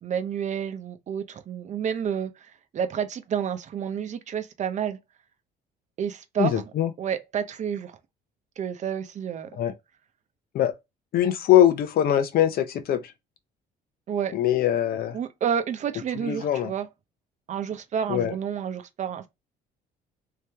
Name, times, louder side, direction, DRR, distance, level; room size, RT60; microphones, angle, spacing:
voice 1, 0.0-5.0 6.0-6.6 7.0-8.0 8.6-9.6 14.1-14.4 15.1-16.9 17.5-19.3, right 8 dB, 45° right, 0.7 m, -30 dB
voice 2, 6.4-6.9 9.6-9.7 10.5-10.7 11.1-13.1 14.3-15.2 16.2-16.7 18.1-18.3, left 11 dB, 60° left, 0.7 m, -22 dB
3.2 x 2.8 x 3.4 m
cardioid pair, 110°, 17 cm